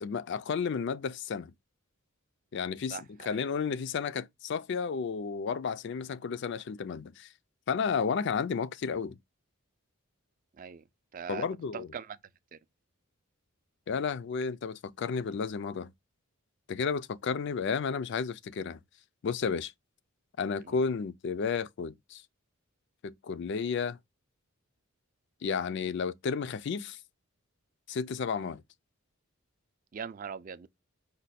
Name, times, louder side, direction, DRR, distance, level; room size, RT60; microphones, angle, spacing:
voice 1, 0.0-1.5 2.5-7.3 7.7-9.2 11.3-11.9 13.9-15.9 16.7-18.8 19.2-19.7 20.4-22.2 23.0-24.0 25.4-27.0 27.9-28.6, left 5 dB, 55° left, 0.4 m, -32 dB
voice 2, 2.9-3.4 10.6-10.8 11.1-11.5 11.7-12.2 12.5-12.6 20.6-20.8 29.9-30.7, right 6 dB, 40° right, 0.4 m, -41 dB
5.2 x 2.2 x 4.1 m
head